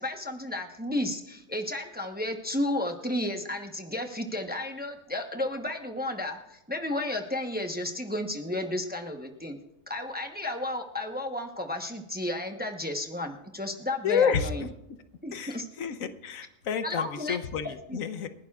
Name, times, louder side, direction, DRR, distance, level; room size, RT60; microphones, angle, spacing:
voice 1, 0.0-9.6 9.9-14.7 15.2-15.7 16.8-17.4 17.9-18.0, left 1 dB, 10° right, 3 dB, 0.9 m, -33 dB
voice 2, 14.0-14.7 15.3-18.3, left 7 dB, 80° left, 10 dB, 1.2 m, -29 dB
29.0 x 11.0 x 2.4 m, 0.88 s
omnidirectional pair, 1.4 m